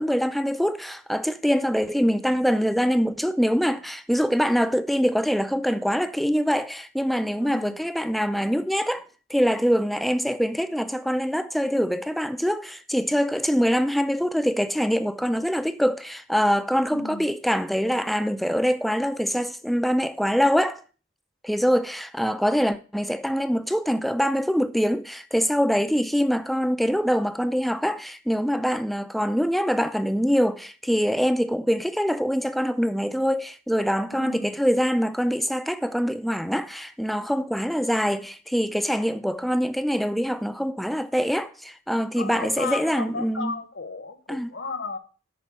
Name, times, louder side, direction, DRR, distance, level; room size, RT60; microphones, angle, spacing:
voice 1, 0.0-9.0 9.3-20.8 21.4-43.6 44.3-44.5, equal, ahead, 0.4 m, -24 dB
voice 2, 7.4-7.8 16.9-17.3 19.4-19.5 34.1-34.6 40.2-40.3 42.2-45.0, left 3 dB, 65° left, 1.1 m, -34 dB
11.0 x 4.5 x 5.6 m
head